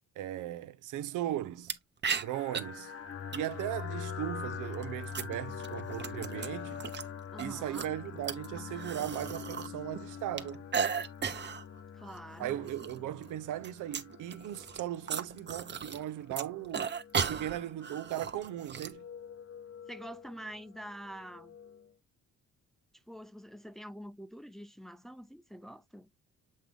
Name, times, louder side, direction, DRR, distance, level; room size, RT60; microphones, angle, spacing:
voice 1, 0.2-1.7 2.2-2.9 3.3-6.8 7.4-10.6 12.4-16.9 17.2-19.0, right 12 dB, 85° right, 0.7 m, -37 dB
sound 1, 1.7-1.8 2.0-2.6 3.3-3.8 4.6-7.0 7.4-9.7 9.9-11.6 12.0-12.2 12.5-13.0 13.2-16.0 16.3-18.9, right 6 dB, 35° right, 1.0 m, -36 dB
sound 2, 2.2-21.9, left 7 dB, 50° left, 1.1 m, -45 dB
voice 2, 7.3-7.9 11.9-12.7 19.9-21.6 23.1-26.1, equal, ahead, 0.6 m, -46 dB
7.6 x 3.7 x 3.5 m
cardioid pair, 90°, 30 cm